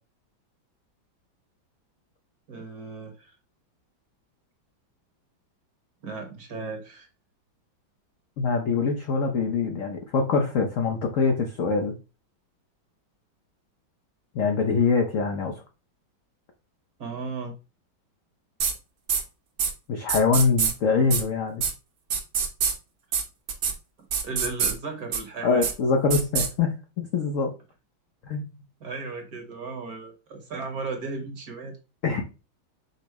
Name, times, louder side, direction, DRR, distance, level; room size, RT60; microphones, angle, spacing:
voice 1, 2.5-3.3 6.0-7.1 17.0-17.5 24.2-25.7 28.8-31.8, right 4 dB, 55° right, 4 dB, 1.2 m, -35 dB
voice 2, 8.4-11.9 14.3-15.5 19.9-21.6 25.4-27.5 28.2-28.4 32.0-32.4, left 4 dB, 80° left, 4 dB, 0.7 m, -24 dB
sound 1, 18.6-18.7 19.1-19.2 19.6-19.7 20.1-20.7 21.1-21.2 21.6-21.7 22.1-22.7 23.1-23.2 23.5-23.7 24.1-24.7 25.1-25.2 25.6-25.7 26.1-26.5, right 7 dB, 75° right, 1.5 m, -24 dB
5.4 x 2.0 x 4.5 m, 0.30 s
omnidirectional pair, 2.2 m